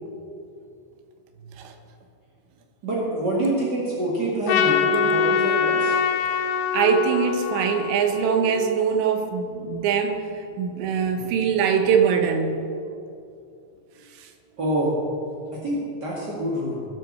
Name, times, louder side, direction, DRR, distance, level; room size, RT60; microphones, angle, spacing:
voice 1, 2.8-5.9 14.6-15.0 15.5-16.9, right 1 dB, 50° right, -5 dB, 1.2 m, -26 dB
Trumpet, 4.5-8.9, left 6 dB, 80° left, 3.3 m, -24 dB
voice 2, 6.7-12.6 14.2-14.3, right 6 dB, 75° right, 5 dB, 3.2 m, -22 dB
19.0 x 8.1 x 6.7 m, 2.5 s
omnidirectional pair, 5.5 m